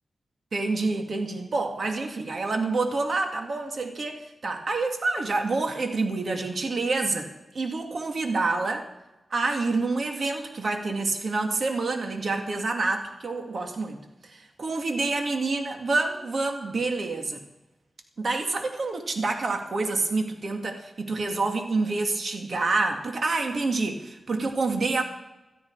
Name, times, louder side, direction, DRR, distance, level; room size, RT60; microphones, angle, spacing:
voice 1, 0.5-8.9 9.3-14.0 14.3-17.4 18.2-25.0, right 3 dB, 60° right, 4 dB, 2.3 m, -27 dB
17.0 x 13.0 x 4.8 m, 1.0 s
cardioid pair, 65°, 0 cm